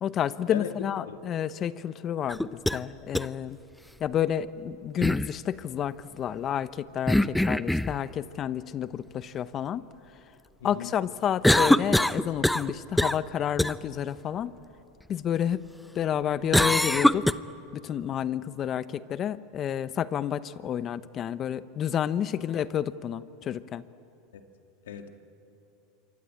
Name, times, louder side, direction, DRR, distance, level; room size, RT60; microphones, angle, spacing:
voice 1, 0.0-3.6 4.0-9.8 10.6-14.5 15.1-15.6 15.9-17.4 17.7-23.8, left 9 dB, 40° left, 15 dB, 0.9 m, -30 dB
sound 1, 2.3-2.8 3.2-3.3 5.0-5.3 7.1-8.0 11.4-12.7 13.0-13.2 13.6-13.7 16.5-17.3, left 1 dB, 5° left, 0.6 m, -22 dB
voice 2, 10.6-11.0 24.3-24.4 24.9-25.1, left 9 dB, 85° left, 6 dB, 2.1 m, -38 dB
27.5 x 24.0 x 8.6 m, 2.8 s
hypercardioid pair, 105°, 0 cm